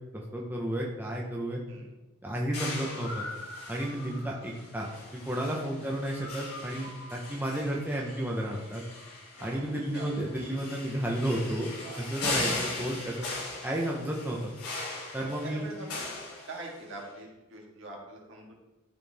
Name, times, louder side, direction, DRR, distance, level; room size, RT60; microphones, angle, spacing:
voice 1, 0.1-1.6 2.2-3.3 3.7-4.9 5.1-8.8 9.4-11.7 12.0-13.2 13.6-14.5 15.1-15.7, right 1 dB, 10° right, -2 dB, 0.8 m, -32 dB
sound 1, 2.5-17.0, left 2 dB, 80° left, 2.8 m, -39 dB
voice 2, 11.5-12.1 15.2-16.1 16.5-18.5, right 2 dB, 60° right, -1 dB, 1.8 m, -44 dB
12.5 x 4.6 x 3.5 m, 1.1 s
head